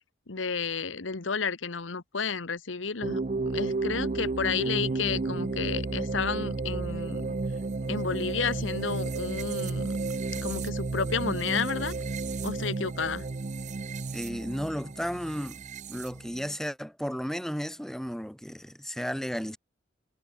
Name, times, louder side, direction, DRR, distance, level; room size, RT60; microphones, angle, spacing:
voice 1, 0.3-3.2 3.5-7.2 7.9-10.0 10.4-11.9 12.4-13.2, left 5 dB, 80° left, 1.2 m, -31 dB
sound 1, 3.0-16.6, right 3 dB, 40° right, 0.5 m, -32 dB
voice 2, 14.1-15.6 15.9-19.6, equal, ahead, 7.5 m, -34 dB
head